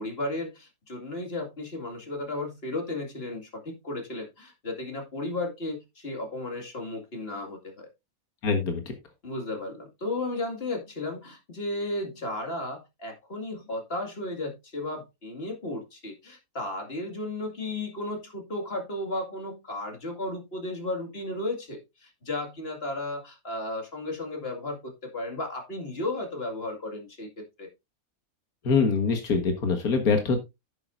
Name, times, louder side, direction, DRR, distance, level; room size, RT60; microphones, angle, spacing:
voice 1, 0.0-7.9 9.2-27.3 27.6-27.7, left 2 dB, 40° left, 3 dB, 2.4 m, -34 dB
voice 2, 8.4-8.9 28.6-30.4, left 4 dB, 80° left, 5 dB, 2.1 m, -24 dB
10.5 x 8.7 x 2.6 m, 0.23 s
omnidirectional pair, 1.5 m